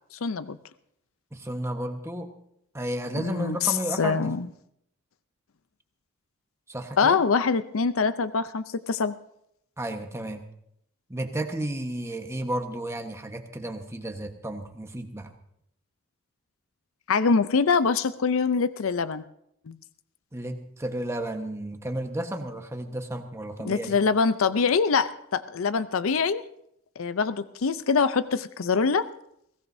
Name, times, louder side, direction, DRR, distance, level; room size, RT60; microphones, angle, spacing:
voice 1, 0.2-0.6 3.1-4.5 7.0-9.1 17.1-19.2 19.7-19.8 23.6-26.4 27.0-29.1, left 5 dB, 75° left, 13 dB, 0.6 m, -24 dB
voice 2, 1.3-2.3 2.7-4.3 6.7-7.2 9.8-10.4 11.1-15.3 20.3-24.0, right 1 dB, 15° right, 4 dB, 1.3 m, -32 dB
21.5 x 17.0 x 2.7 m, 0.74 s
head